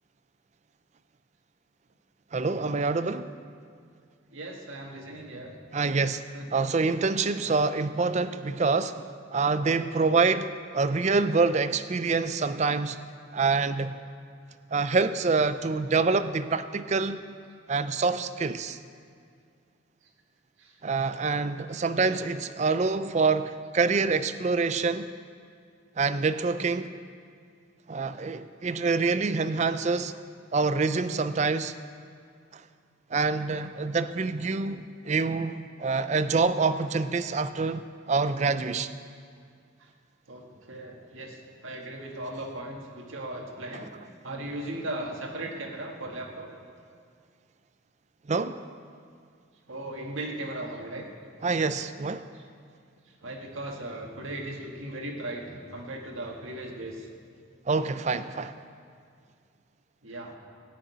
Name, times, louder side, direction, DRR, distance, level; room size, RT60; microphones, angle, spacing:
voice 1, 2.3-3.3 5.7-6.2 6.5-13.0 13.3-14.0 14.7-17.2 17.7-18.8 20.8-25.1 26.0-26.9 27.9-30.1 30.5-31.8 32.5-32.6 33.1-38.9 48.3-48.6 51.4-52.3 57.7-58.6, right 4 dB, 35° right, 13 dB, 0.4 m, -26 dB
voice 2, 4.3-5.5 6.3-6.5 20.6-20.7 22.0-22.1 39.8-39.9 40.3-43.9 44.2-46.5 49.7-51.1 53.2-57.1 60.0-60.3, right 1 dB, 75° right, 1 dB, 1.8 m, -37 dB
15.5 x 6.4 x 9.3 m, 2.2 s
head